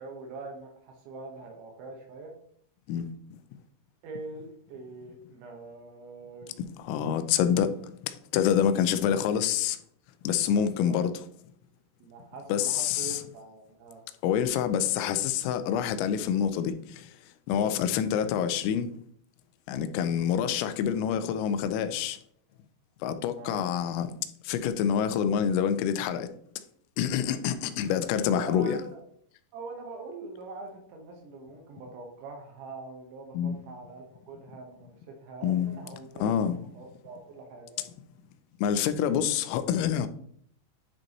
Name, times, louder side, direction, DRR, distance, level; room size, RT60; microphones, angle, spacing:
voice 1, 0.0-2.4 4.0-6.5 10.4-11.0 12.0-14.0 20.0-20.2 23.4-23.7 28.3-29.0 29.5-36.4 36.7-37.9, right 3 dB, 75° right, 3.2 m, -43 dB
voice 2, 6.8-7.8 8.0-9.8 10.2-11.1 12.5-13.2 14.2-17.1 17.5-18.9 19.7-22.2 23.0-24.1 24.4-26.3 27.0-28.8 33.3-33.6 35.4-35.7 36.2-36.6 38.6-40.1, left 8 dB, 90° left, 3.3 m, -27 dB
11.0 x 5.2 x 2.9 m
omnidirectional pair, 5.9 m